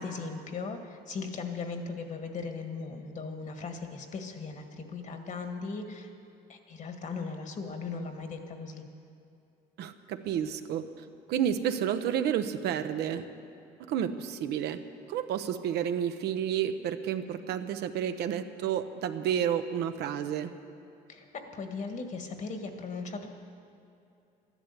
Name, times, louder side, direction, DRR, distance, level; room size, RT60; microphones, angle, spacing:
voice 1, 0.0-6.1 6.5-8.8 21.1-23.3, left 4 dB, 45° left, 5 dB, 1.7 m, -38 dB
voice 2, 9.8-13.2 13.9-14.8 15.1-20.5, right 9 dB, 80° right, 8 dB, 0.8 m, -30 dB
13.5 x 11.0 x 8.2 m, 2.7 s
cardioid pair, 110°, 17 cm